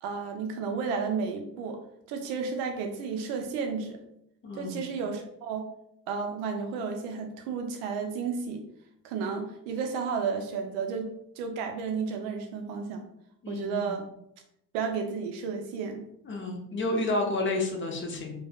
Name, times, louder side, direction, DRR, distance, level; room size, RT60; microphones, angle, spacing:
voice 1, 0.0-1.8 2.1-4.0 4.6-5.7 6.1-8.6 9.0-13.1 13.5-14.0 14.7-16.0, right 5 dB, 65° right, 4 dB, 0.5 m, -32 dB
voice 2, 4.4-4.8 13.4-13.9 16.2-18.4, left 2 dB, 25° left, 2 dB, 0.7 m, -30 dB
3.2 x 2.1 x 2.2 m, 0.76 s
hypercardioid pair, 50°, 44 cm